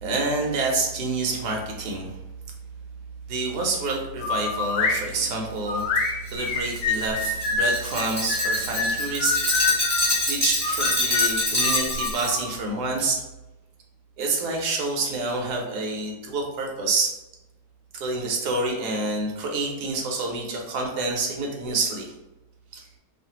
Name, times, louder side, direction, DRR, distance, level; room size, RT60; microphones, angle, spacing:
voice 1, 0.0-2.2 3.3-9.4 10.3-13.2 14.2-17.1 17.9-22.1 22.7-22.9, right 3 dB, 75° right, 1 dB, 1.2 m, -27 dB
sound 1, 4.2-5.0 5.7-7.7 8.3-10.1 10.6-12.5, left 4 dB, 70° left, 1.2 m, -26 dB
Glass, 6.0-12.4, left 1 dB, 15° right, 1.4 m, -26 dB
2.8 x 2.5 x 2.8 m, 1.0 s
omnidirectional pair, 1.8 m